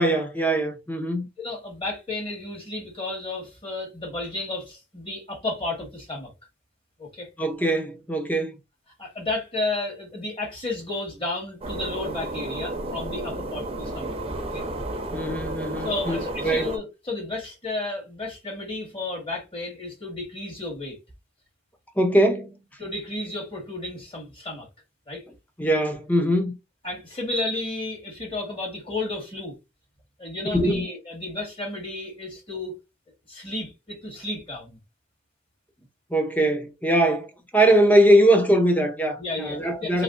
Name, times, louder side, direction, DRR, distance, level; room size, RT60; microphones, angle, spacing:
voice 1, 0.0-1.3 7.4-8.5 15.1-16.7 22.0-22.5 25.6-26.6 30.5-30.9 36.1-40.0, right 1 dB, 10° left, 0.7 m, -21 dB
voice 2, 1.4-6.3 7.0-7.3 9.0-14.7 15.8-21.0 22.8-24.7 25.1-25.2 26.8-29.5 30.2-32.8 33.3-34.8 39.2-40.0, left 2 dB, 30° left, 1.8 m, -32 dB
sound 1, 11.6-16.8, right 1 dB, 35° right, 0.7 m, -32 dB
3.5 x 3.2 x 2.5 m
head